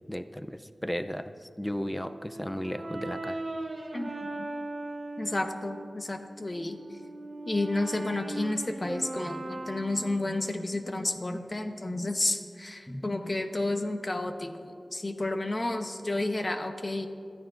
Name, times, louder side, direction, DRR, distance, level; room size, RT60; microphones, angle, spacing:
voice 1, 0.1-3.4 11.3-11.4 12.9-13.0, equal, 10° left, 9 dB, 0.5 m, -35 dB
Brass instrument, 2.0-6.0 6.5-10.6, right 2 dB, 55° right, 1.6 m, -39 dB
voice 2, 3.9-4.5 5.2-6.8 7.4-17.1, left 2 dB, 35° left, 5 dB, 1.1 m, -31 dB
26.0 x 14.5 x 2.6 m, 2.3 s
wide cardioid pair, 85°, 0 cm